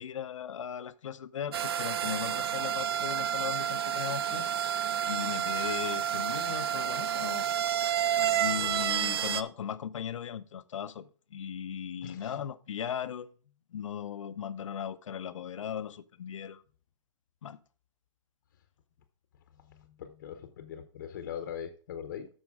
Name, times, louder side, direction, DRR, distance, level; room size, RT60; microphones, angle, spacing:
voice 1, 0.0-4.5 5.1-7.4 8.3-13.3 13.7-16.6 17.4-17.6, left 8 dB, 85° left, 0.7 m, -38 dB
sound 1, 1.5-9.4, right 9 dB, 55° right, 0.5 m, -30 dB
voice 2, 12.0-12.3 19.7-22.3, left 8 dB, 40° left, 0.8 m, -41 dB
13.5 x 5.2 x 3.5 m
hypercardioid pair, 170°, 16 cm